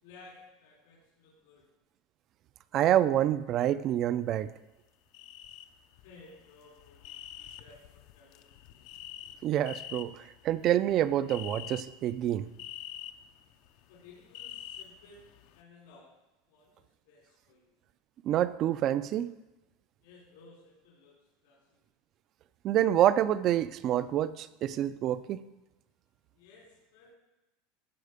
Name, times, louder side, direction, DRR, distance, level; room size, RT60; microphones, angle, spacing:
voice 1, 0.0-1.6 5.9-8.9 13.9-16.1 16.5-17.8 20.0-21.2 21.4-21.8 26.3-27.2, left 3 dB, 80° left, -4 dB, 3.4 m, -57 dB
voice 2, 2.7-4.5 9.4-12.5 18.2-19.3 22.6-25.4, right 11 dB, 30° right, 16 dB, 0.3 m, -27 dB
sound 1, 5.1-5.6 5.9-15.6, left 11 dB, 45° left, 0.5 m, -46 dB
14.5 x 5.1 x 5.0 m, 1.0 s
supercardioid pair, 170°, 0 cm